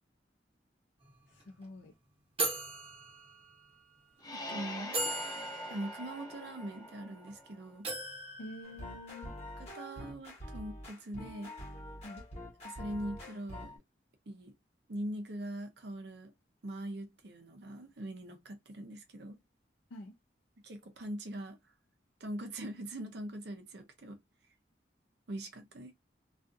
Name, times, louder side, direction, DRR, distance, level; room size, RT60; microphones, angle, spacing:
sound 1, 1.0-1.1 1.4-1.6 2.4-3.8 4.4-4.5 4.9-7.3 7.8-9.5, right 2 dB, 30° right, 1.0 m, -39 dB
voice 1, 1.3-1.9 8.4-9.3 12.0-12.2 19.9-20.1, left 1 dB, 80° left, 0.5 m, -47 dB
sound 2, 4.2-7.8, left 1 dB, 20° left, 0.5 m, -44 dB
voice 2, 4.3-4.9 5.7-7.9 9.7-11.5 12.6-13.8 14.3-14.5 14.9-16.3 16.6-19.4 20.6-21.6 22.2-24.2 25.3-25.9, right 1 dB, 60° right, 0.6 m, -42 dB
sound 3, 8.6-13.8, left 1 dB, 35° left, 1.1 m, -46 dB
2.4 x 2.3 x 2.5 m
head